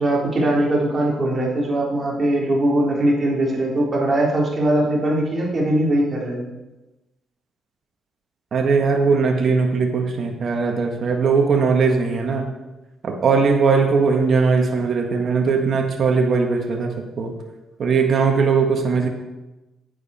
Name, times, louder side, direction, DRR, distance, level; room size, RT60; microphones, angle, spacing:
voice 1, 0.0-6.5, right 1 dB, 35° right, -3 dB, 3.4 m, -20 dB
voice 2, 8.5-12.5 13.0-17.3 17.8-19.1, right 5 dB, 50° right, 2 dB, 1.5 m, -19 dB
10.5 x 9.3 x 4.3 m, 1.0 s
cardioid pair, 90°, 0 cm